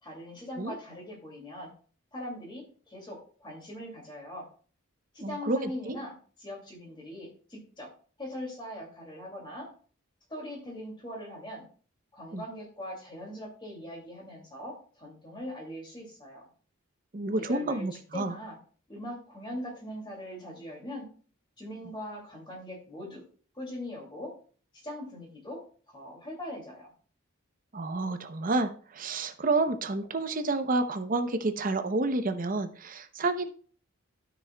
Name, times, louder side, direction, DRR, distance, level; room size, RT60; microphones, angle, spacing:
voice 1, 0.0-1.7 2.1-4.5 5.1-7.9 8.2-9.7 10.3-11.6 12.1-16.5 17.4-17.9 18.1-18.6 18.9-21.1 21.6-23.2 23.5-24.3 24.8-25.6 25.9-26.9, left 1 dB, 25° left, -2 dB, 2.4 m, -41 dB
voice 2, 5.2-6.0 12.3-12.4 17.1-18.3 27.7-33.5, right 2 dB, 40° right, 8 dB, 0.7 m, -29 dB
12.5 x 6.1 x 2.3 m, 0.43 s
head